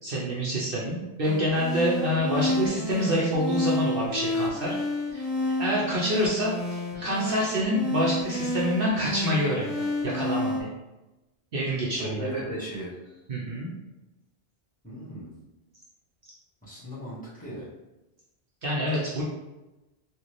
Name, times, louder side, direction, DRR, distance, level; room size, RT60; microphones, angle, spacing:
voice 1, 0.0-4.7 5.1-5.3 5.6-10.7 11.5-12.4 13.3-13.7 18.6-19.2, equal, 60° right, -5 dB, 0.9 m, -27 dB
sound 1, 1.2-10.6, left 2 dB, 35° left, 1.1 m, -30 dB
voice 2, 12.0-12.9 14.8-15.3 16.6-17.7, equal, 5° left, -10 dB, 1.4 m, -36 dB
3.9 x 2.5 x 3.1 m, 1.0 s
omnidirectional pair, 1.1 m